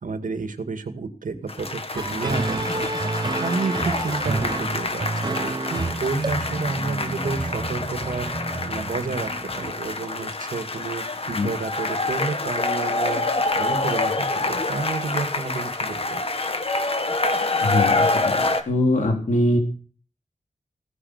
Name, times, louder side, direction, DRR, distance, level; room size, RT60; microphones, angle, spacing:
voice 1, 0.0-2.9 3.4-16.2, right 4 dB, 85° right, 8 dB, 2.2 m, -31 dB
sound 1, 1.5-18.6, left 2 dB, 45° left, 1.9 m, -26 dB
sound 2, 1.9-9.7, right 3 dB, 35° right, 0.9 m, -30 dB
voice 2, 17.6-19.6, left 1 dB, 70° left, 2 dB, 4.2 m, -22 dB
17.5 x 10.0 x 6.7 m, 0.39 s
wide cardioid pair, 95°, 13 cm